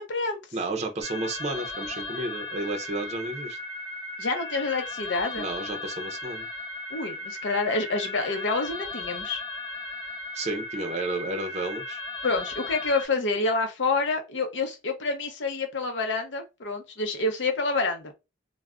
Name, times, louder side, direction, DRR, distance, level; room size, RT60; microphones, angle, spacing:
voice 1, 0.0-0.4 4.2-5.5 6.9-9.4 12.2-18.1, left 3 dB, 70° left, 0.6 m, -28 dB
voice 2, 0.5-3.6 5.4-6.5 10.3-12.0, right 2 dB, 35° right, 0.5 m, -32 dB
sound 1, 1.0-13.1, left 2 dB, 20° left, 0.8 m, -36 dB
2.3 x 2.0 x 3.4 m
head